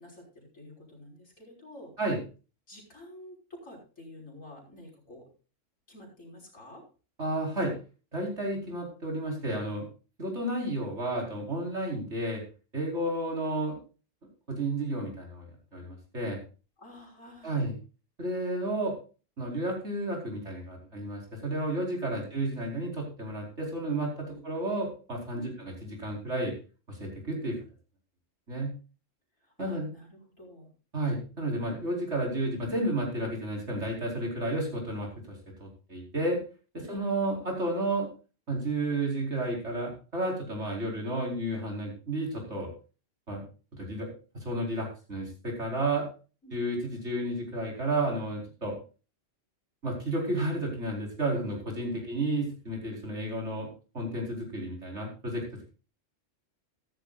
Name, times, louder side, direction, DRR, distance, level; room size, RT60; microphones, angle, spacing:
voice 1, 0.0-2.0 2.7-5.3 5.9-6.8 16.8-17.7 22.1-22.2 24.3-24.4 25.3-25.5 29.6-30.7 36.8-37.1 46.4-46.6 51.9-52.1, left 1 dB, 90° left, -2 dB, 6.1 m, -49 dB
voice 2, 7.2-7.7 8.1-9.9 10.2-12.4 12.7-13.8 14.5-16.4 17.4-17.8 18.2-18.9 19.4-26.5 26.9-27.6 28.5-28.7 29.6-29.9 30.9-36.4 36.7-38.1 38.5-42.7 43.3-43.4 43.7-44.1 44.4-46.1 46.5-48.7 49.8-55.4, right 1 dB, 60° right, 0 dB, 5.2 m, -32 dB
15.0 x 13.5 x 2.5 m, 0.34 s
omnidirectional pair, 1.3 m